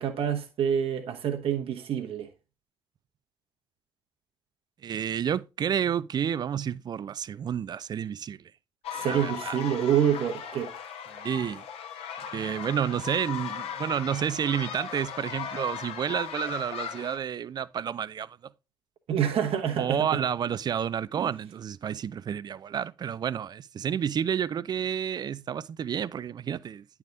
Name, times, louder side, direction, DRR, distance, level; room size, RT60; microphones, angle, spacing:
voice 1, 0.0-2.3 8.9-10.7 19.1-20.2 21.2-21.3, right 9 dB, 50° right, 1.0 m, -27 dB
voice 2, 4.8-8.5 9.1-9.6 11.1-11.6 12.3-18.4 19.7-26.9, right 8 dB, 35° right, 0.4 m, -30 dB
sound 1, 8.8-17.2, left 8 dB, 55° left, 0.9 m, -38 dB
10.5 x 3.5 x 3.8 m
figure-of-eight pair, 45°, 12 cm